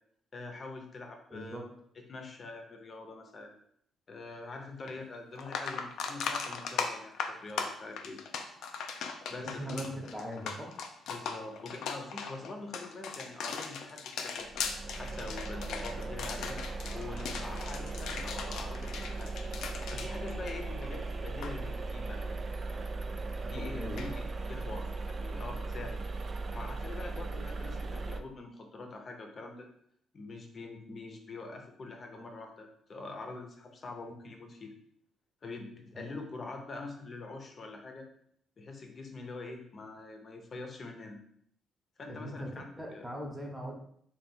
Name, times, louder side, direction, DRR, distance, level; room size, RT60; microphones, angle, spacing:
voice 1, 0.3-1.6 1.9-3.5 4.1-8.2 9.3-9.7 11.1-14.5 15.0-16.6 16.9-19.3 19.9-22.2 23.4-26.0 26.5-29.7 30.1-34.7 35.4-38.1 38.6-41.2 42.0-43.0, left 3 dB, 45° left, 4 dB, 0.7 m, -44 dB
voice 2, 1.3-1.6 9.4-10.8 23.5-24.1 35.9-36.2 42.1-42.5 42.8-43.7, equal, 10° right, 0 dB, 0.9 m, -40 dB
sound 1, 4.9-5.0 5.4-21.0 21.2-21.5 24.0-24.1, left 5 dB, 75° left, 0.4 m, -38 dB
sound 2, 14.4-28.2, right 3 dB, 40° right, 0.3 m, -38 dB
3.4 x 2.4 x 4.2 m, 0.67 s
cardioid pair, 90°, 0 cm